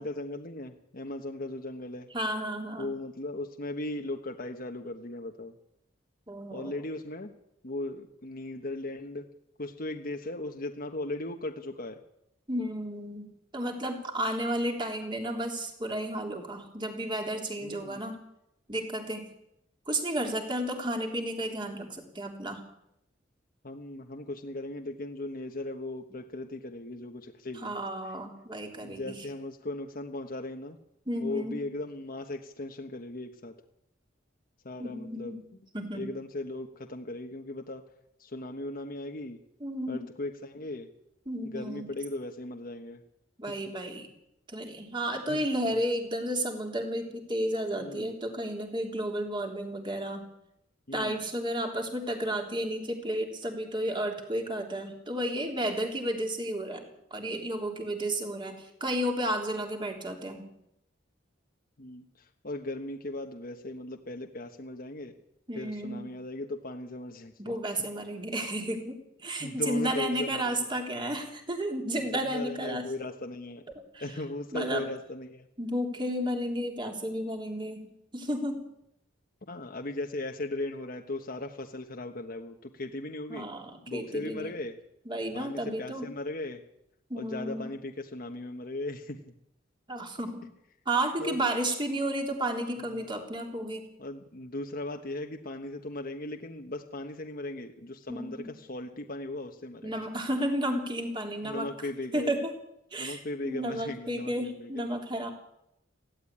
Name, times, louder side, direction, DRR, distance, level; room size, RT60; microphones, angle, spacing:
voice 1, 0.0-2.1 2.8-5.5 6.5-7.3 7.6-9.3 9.6-12.0 17.6-18.0 23.6-27.7 28.8-30.8 31.2-33.5 34.6-35.4 35.9-37.8 38.2-39.4 39.9-40.9 41.4-43.0 45.3-45.4 45.7-45.8 47.8-48.1 50.9-51.2 61.8-65.1 65.5-67.3 69.4-70.7 72.1-73.6 74.0-75.5 79.5-83.5 83.9-84.8 85.3-86.6 87.2-89.2 91.2-91.4 92.9-93.0 94.0-100.1 101.4-102.3 103.0-104.9, left 2 dB, 50° left, 3 dB, 1.2 m, -37 dB
voice 2, 2.1-2.9 6.3-6.8 12.5-18.2 18.7-19.3 19.9-22.6 27.6-29.3 31.1-31.6 34.8-35.4 35.7-36.1 39.6-40.0 41.3-41.9 43.4-44.1 44.5-50.2 50.9-60.5 65.5-66.1 67.4-72.9 73.9-74.1 74.5-74.9 75.6-78.6 83.3-84.5 85.0-86.1 87.1-87.7 89.9-90.5 90.8-93.9 98.1-98.5 99.8-101.7 102.1-102.5 102.9-105.3, right 1 dB, 25° right, 2 dB, 3.4 m, -32 dB
17.0 x 15.5 x 10.0 m, 0.81 s
head